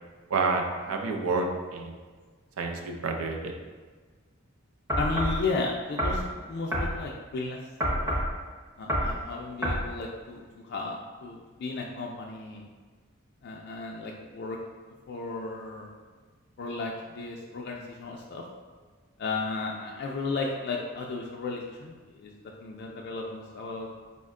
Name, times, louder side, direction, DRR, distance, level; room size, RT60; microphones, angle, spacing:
voice 1, 0.3-2.0 2.6-3.5, right 3 dB, 85° right, 3 dB, 0.5 m, -29 dB
sound 1, 4.9-5.4 6.0-6.2 6.7-6.9 7.8-8.3 8.9-9.1 9.6-9.8, equal, 15° right, 0.7 m, -27 dB
voice 2, 5.0-7.6 7.9-8.1 8.8-12.7 13.4-14.6 15.1-15.9 16.6-18.4 19.2-22.3 22.6-23.9, left 3 dB, 50° left, -1 dB, 0.3 m, -34 dB
4.2 x 2.1 x 3.6 m, 1.4 s
head